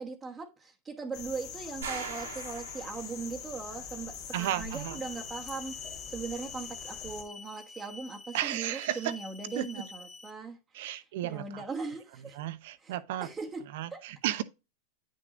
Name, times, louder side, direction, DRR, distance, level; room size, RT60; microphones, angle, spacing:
voice 1, 0.0-12.4 12.8-12.9 13.2-14.0, right 4 dB, 15° right, 1.3 m, -40 dB
sound 1, 1.1-7.2, left 7 dB, 55° left, 2.2 m, -43 dB
sound 2, 1.8-3.3, right 5 dB, 90° right, 2.2 m, -40 dB
voice 2, 4.3-5.0 8.3-9.1 9.6-9.8 10.7-11.6 12.4-13.3 13.7-14.4, right 13 dB, 65° right, 0.8 m, -33 dB
sound 3, 4.9-10.3, left 3 dB, 20° left, 1.7 m, -48 dB
9.3 x 6.3 x 2.5 m
hypercardioid pair, 110°, 0 cm